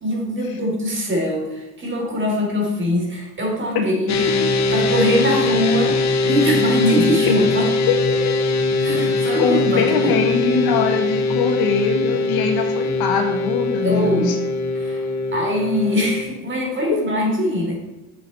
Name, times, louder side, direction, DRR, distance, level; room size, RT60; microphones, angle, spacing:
voice 1, 0.0-4.1 4.7-6.0 6.2-7.7 8.8-10.1 13.8-14.3 14.7-15.0 15.3-17.8, equal, 30° right, 0 dB, 3.0 m, -22 dB
sound 1, 4.1-16.2, left 3 dB, 45° left, 0.9 m, -21 dB
voice 2, 7.9-8.3 9.4-14.3, left 5 dB, 80° left, 4 dB, 1.5 m, -22 dB
7.3 x 6.8 x 4.3 m, 1.1 s
cardioid pair, 95°, 36 cm